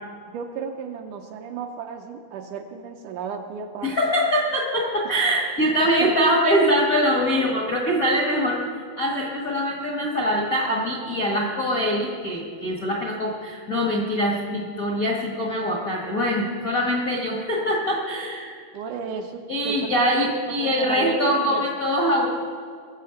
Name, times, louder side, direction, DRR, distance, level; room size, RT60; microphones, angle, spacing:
voice 1, 0.3-4.0 6.0-6.1 18.7-20.3 20.6-21.7, right 6 dB, 75° right, 4 dB, 2.0 m, -33 dB
voice 2, 3.8-8.6 9.0-18.6 19.5-22.3, equal, 50° left, -2 dB, 1.0 m, -23 dB
21.5 x 7.2 x 5.8 m, 2.2 s
omnidirectional pair, 4.1 m